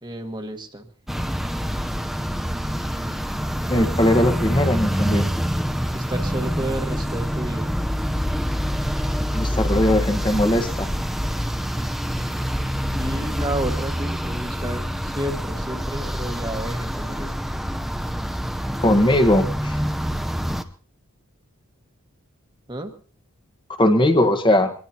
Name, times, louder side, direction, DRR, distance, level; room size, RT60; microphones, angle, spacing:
voice 1, 0.0-0.9 5.9-7.7 12.9-17.5 22.7-22.9, right 1 dB, 20° right, 5 dB, 1.5 m, -31 dB
sound 1, 1.1-20.6, equal, ahead, 0.7 m, -26 dB
voice 2, 3.7-5.3 9.3-10.9 18.8-19.7 23.8-24.7, left 1 dB, 20° left, 5 dB, 1.4 m, -19 dB
23.5 x 19.5 x 2.9 m, 0.43 s
head